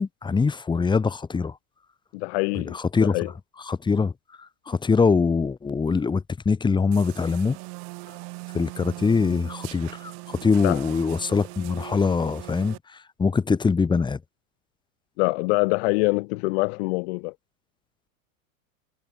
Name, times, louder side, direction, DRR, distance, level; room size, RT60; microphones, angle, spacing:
voice 1, 0.0-1.5 2.5-3.1 3.7-4.1 4.7-7.6 8.5-12.8 13.2-14.2, left 5 dB, 10° left, 1.5 m, -23 dB
voice 2, 2.1-3.3 10.6-10.8 15.2-17.3, left 28 dB, 50° left, 0.6 m, -25 dB
sound 1, 6.9-12.8, right 40 dB or more, 50° right, 2.5 m, -40 dB
supercardioid pair, 130°, 42 cm